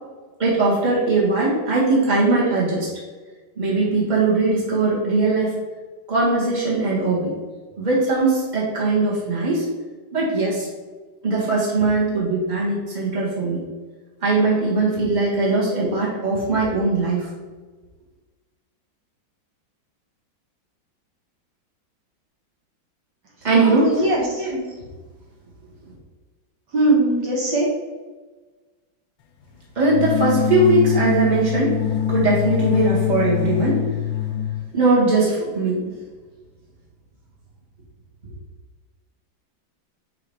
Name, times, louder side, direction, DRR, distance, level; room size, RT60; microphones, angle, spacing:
voice 1, 0.4-2.9 3.6-5.6 6.1-7.3 7.8-9.7 10.1-10.7 11.2-13.6 14.2-17.3 23.4-24.8 29.8-31.8 32.1-33.8 34.7-35.8, right 3 dB, 25° right, -6 dB, 1.9 m, -20 dB
voice 2, 23.6-24.4 26.7-27.7, right 1 dB, 65° right, -3 dB, 1.8 m, -20 dB
sound 1, 29.9-34.6, left 9 dB, 75° left, 1.3 m, -23 dB
4.9 x 4.9 x 4.9 m, 1.3 s
omnidirectional pair, 2.1 m